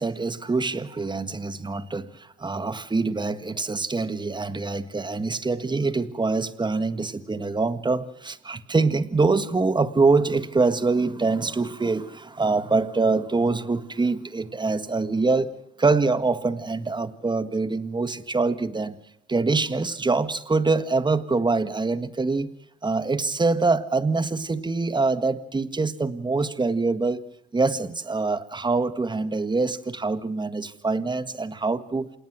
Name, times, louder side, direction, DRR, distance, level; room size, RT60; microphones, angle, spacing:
voice 1, 0.0-2.1 2.4-15.5 15.8-18.9 19.3-22.5 22.8-27.3 27.5-32.1, right 3 dB, 20° right, 12 dB, 1.7 m, -24 dB
27.5 x 19.0 x 6.3 m, 0.76 s
cardioid pair, 90°, 20 cm